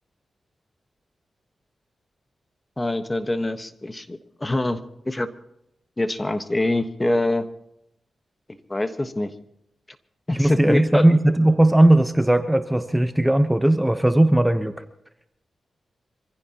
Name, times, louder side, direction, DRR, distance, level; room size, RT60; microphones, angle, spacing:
voice 1, 2.8-5.3 6.0-7.5 8.7-9.3 10.3-11.0, left 1 dB, 20° left, 9 dB, 1.4 m, -25 dB
voice 2, 10.3-14.7, right 1 dB, 10° right, 9 dB, 1.0 m, -18 dB
26.5 x 15.5 x 3.0 m, 0.80 s
cardioid pair, 70°, 0 cm